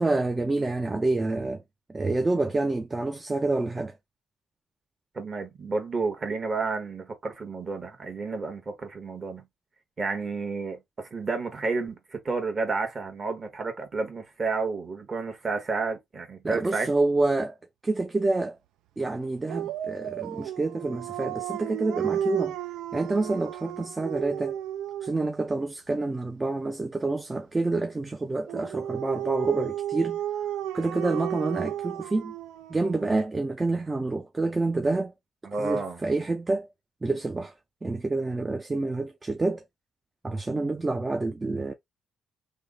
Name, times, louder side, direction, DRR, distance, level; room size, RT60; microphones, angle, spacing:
voice 1, 0.0-1.6 1.9-4.0 16.4-17.6 17.8-18.6 19.0-22.6 22.9-24.6 25.0-30.2 30.7-32.3 32.7-35.1 35.6-36.7 37.0-37.5 37.8-39.6 40.2-41.7, right 2 dB, 20° right, 0.4 m, -27 dB
voice 2, 5.1-9.4 10.0-16.9 35.4-36.0, right 4 dB, 35° right, 1.3 m, -31 dB
Dog, 19.5-25.3 28.5-33.1, right 11 dB, 90° right, 0.3 m, -33 dB
3.4 x 2.1 x 3.8 m
cardioid pair, 90°, 0 cm